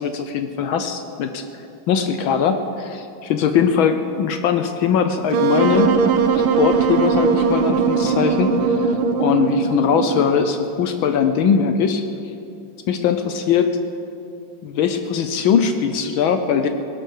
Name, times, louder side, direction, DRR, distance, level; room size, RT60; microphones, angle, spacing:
voice 1, 0.0-1.4 1.9-6.0 6.3-12.0 12.9-13.7 14.6-16.7, left 7 dB, 75° left, 8 dB, 1.5 m, -20 dB
Wind instrument woodwind instrument, 5.3-10.4, right 5 dB, 90° right, 1.9 m, -19 dB
19.0 x 11.0 x 6.6 m, 2.6 s
omnidirectional pair, 2.3 m